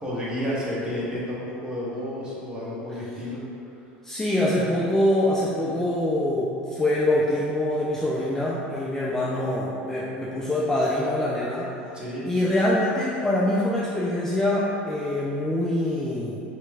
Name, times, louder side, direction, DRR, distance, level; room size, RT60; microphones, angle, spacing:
voice 1, 0.0-3.4 11.9-12.2, left 1 dB, 15° right, -7 dB, 1.0 m, -31 dB
voice 2, 4.0-11.7 12.3-16.4, left 1 dB, 10° left, -6 dB, 0.4 m, -24 dB
3.2 x 3.0 x 2.3 m, 2.7 s
hypercardioid pair, 85°, 5 cm